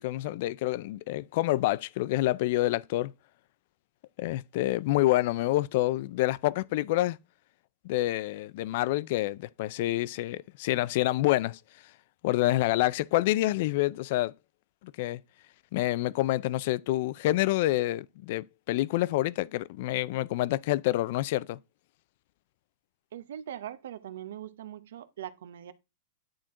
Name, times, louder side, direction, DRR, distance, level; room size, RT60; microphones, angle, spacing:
voice 1, 0.0-3.1 4.2-7.2 7.8-11.6 12.2-14.3 15.0-15.2 15.7-21.6, left 16 dB, 50° left, 0.4 m, -27 dB
voice 2, 23.1-25.7, right 10 dB, 85° right, 0.8 m, -41 dB
10.0 x 4.4 x 3.6 m
supercardioid pair, 165°, 0 cm